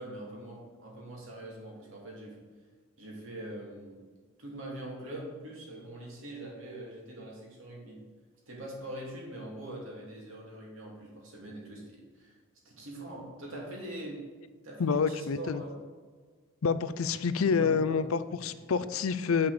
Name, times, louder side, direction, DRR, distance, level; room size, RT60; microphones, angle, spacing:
voice 1, 0.0-2.4 3.0-4.0 4.4-8.0 8.5-12.4 12.6-14.3 14.6-15.8 17.5-18.4 18.7-18.8, right 1 dB, 70° right, -2 dB, 2.6 m, -43 dB
voice 2, 14.8-15.6 16.6-19.5, left 5 dB, 75° left, 13 dB, 0.5 m, -28 dB
8.7 x 5.8 x 5.0 m, 1.5 s
head